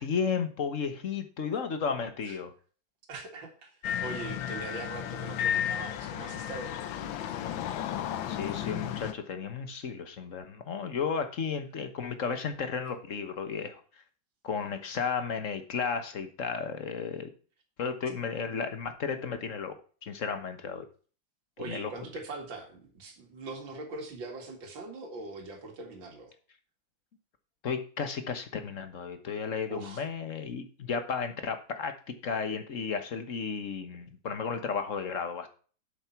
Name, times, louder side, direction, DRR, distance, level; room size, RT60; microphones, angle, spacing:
voice 1, 0.0-2.5 8.3-13.8 14.4-17.3 17.8-19.8 20.0-20.9 21.7-21.9 27.6-35.5, left 6 dB, 45° left, 8 dB, 1.4 m, -33 dB
voice 2, 3.1-6.8 21.6-26.3 29.7-30.0, right 3 dB, 70° right, 2 dB, 2.9 m, -41 dB
sound 1, 3.8-9.1, left 10 dB, 75° left, 1.5 m, -33 dB
7.9 x 7.6 x 5.8 m, 0.40 s
omnidirectional pair, 2.2 m